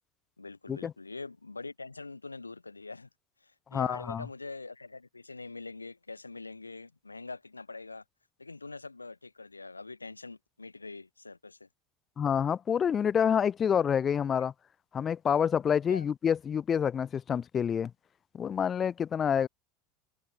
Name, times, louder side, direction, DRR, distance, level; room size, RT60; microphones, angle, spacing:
voice 1, 0.4-3.1 3.4-8.0 8.4-11.7 15.9-16.0 19.3-19.5, left 3 dB, 90° left, 3.7 m, -44 dB
voice 2, 3.7-4.3 12.2-14.5 14.9-17.9 18.3-19.5, left 8 dB, 30° left, 1.8 m, -27 dB
figure-of-eight pair, 75°, 0 cm